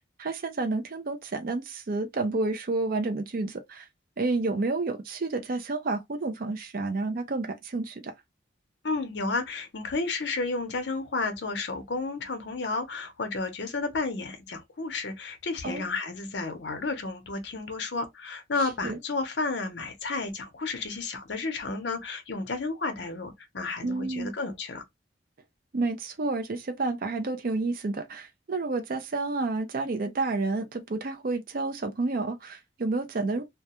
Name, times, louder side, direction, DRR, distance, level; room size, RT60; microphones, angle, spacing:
voice 1, 0.0-3.9 4.2-8.1 15.6-15.9 18.8-19.0 23.8-24.3 25.7-33.4, right 3 dB, 50° right, 0.4 m, -30 dB
voice 2, 8.8-24.8, left 3 dB, 60° left, 0.6 m, -32 dB
2.3 x 2.2 x 2.8 m
head